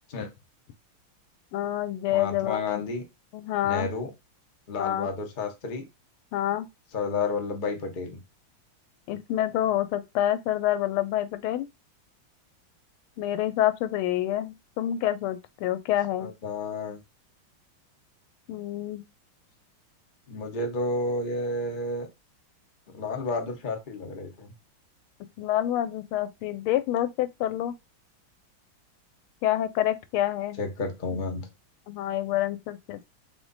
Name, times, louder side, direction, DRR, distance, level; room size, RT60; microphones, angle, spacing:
voice 1, 1.5-2.6 3.3-3.9 4.8-5.1 6.3-6.7 9.1-11.7 13.2-16.3 18.5-19.0 25.4-27.7 29.4-30.6 31.9-33.1, left 12 dB, 90° left, 1.5 m, -27 dB
voice 2, 2.1-3.0 3.6-4.1 4.7-5.9 6.9-8.2 16.2-17.0 20.3-22.1 22.9-24.5 30.6-31.5, left 3 dB, 50° left, 0.5 m, -31 dB
3.7 x 3.2 x 3.9 m
omnidirectional pair, 2.3 m